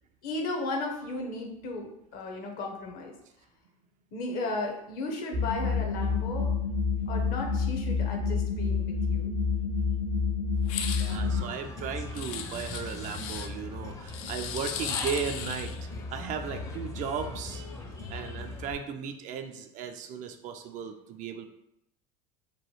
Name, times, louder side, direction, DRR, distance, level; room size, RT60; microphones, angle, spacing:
voice 1, 0.2-3.1 4.1-6.6 7.1-9.3, left 2 dB, 55° left, 2 dB, 0.8 m, -35 dB
sound 1, 5.3-11.4, left 5 dB, 75° right, 0.8 m, -28 dB
sound 2, 10.6-11.2 12.2-13.5 14.1-15.8, left 8 dB, 70° left, 0.4 m, -37 dB
voice 2, 11.0-15.7 16.1-17.6 18.1-21.5, right 7 dB, 45° right, 6 dB, 0.4 m, -36 dB
Human voice / Bird, 11.1-18.7, left 2 dB, 20° left, 0.5 m, -39 dB
3.0 x 2.2 x 3.1 m, 0.80 s
hypercardioid pair, 90°, 18 cm